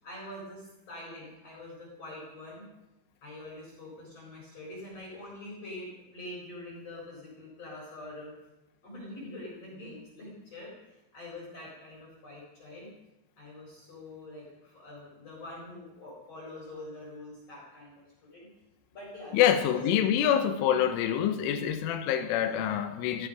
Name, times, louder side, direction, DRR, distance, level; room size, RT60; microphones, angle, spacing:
voice 1, 0.0-2.7 3.2-8.3 8.8-10.7 11.1-12.9 13.4-17.9 18.2-18.5 18.9-19.4 19.7-19.8, left 1 dB, 35° left, 4.9 m, -44 dB
voice 2, 19.3-23.3, left 10 dB, 80° left, 3.4 m, -26 dB
15.5 x 15.0 x 5.3 m
omnidirectional pair, 5.7 m